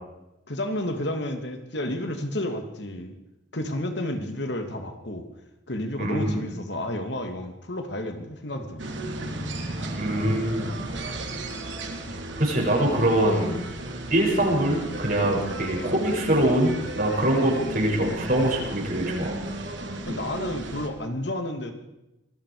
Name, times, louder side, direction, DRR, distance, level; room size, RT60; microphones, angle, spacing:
voice 1, 0.5-3.1 3.5-5.3 5.7-8.9 19.2-19.6 20.1-21.7, left 1 dB, 60° left, 6 dB, 2.6 m, -31 dB
voice 2, 6.0-6.4 10.0-10.8 12.4-13.6 14.1-19.3, right 1 dB, 50° right, -1 dB, 7.1 m, -23 dB
sound 1, 8.8-20.9, right 2 dB, 70° right, 3.2 m, -35 dB
26.0 x 21.0 x 5.1 m, 0.92 s
head